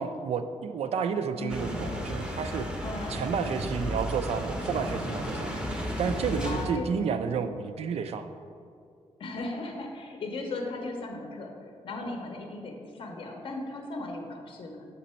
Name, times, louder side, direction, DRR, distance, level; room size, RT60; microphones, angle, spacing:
voice 1, 0.0-2.7 3.1-8.3, right 6 dB, 65° right, 9 dB, 0.4 m, -31 dB
sound 1, 1.5-6.6, equal, 5° right, 0.6 m, -33 dB
voice 2, 2.8-3.3 6.4-7.0 9.2-11.5 11.8-14.9, left 2 dB, 50° left, 2 dB, 0.6 m, -36 dB
6.2 x 4.0 x 4.2 m, 2.4 s
wide cardioid pair, 155°, 11 cm